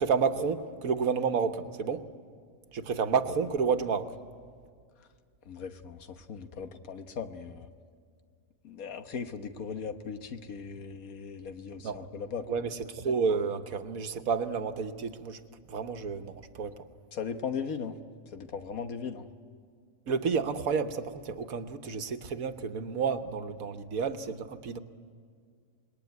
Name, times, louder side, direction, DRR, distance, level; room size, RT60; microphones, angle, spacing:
voice 1, 0.0-2.1 2.7-4.2 11.8-12.0 12.5-15.4 15.7-16.8 20.1-24.8, right 5 dB, 85° right, 8 dB, 1.6 m, -30 dB
voice 2, 5.5-7.7 8.6-12.5 17.1-18.0 18.3-19.3, left 6 dB, 85° left, 8 dB, 1.6 m, -38 dB
26.5 x 21.0 x 9.4 m, 2.1 s
omnidirectional pair, 1.4 m